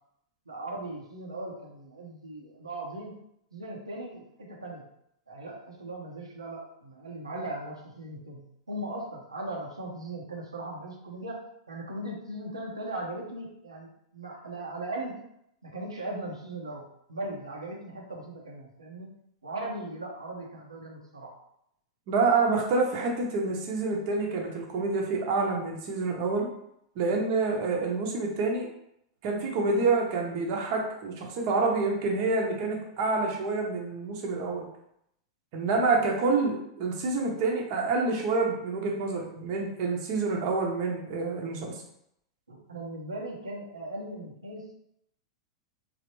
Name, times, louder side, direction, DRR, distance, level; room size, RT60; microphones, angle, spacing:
voice 1, 0.5-3.2 3.5-4.8 5.3-8.4 8.7-15.2 15.6-19.1 19.4-21.3 42.5-44.7, right 1 dB, 90° right, -2 dB, 0.6 m, -38 dB
voice 2, 22.1-26.5 27.0-28.7 29.2-34.7 35.5-41.7, right 3 dB, 50° right, 0 dB, 0.7 m, -27 dB
3.2 x 2.0 x 3.0 m, 0.75 s
figure-of-eight pair, 100°, 3 cm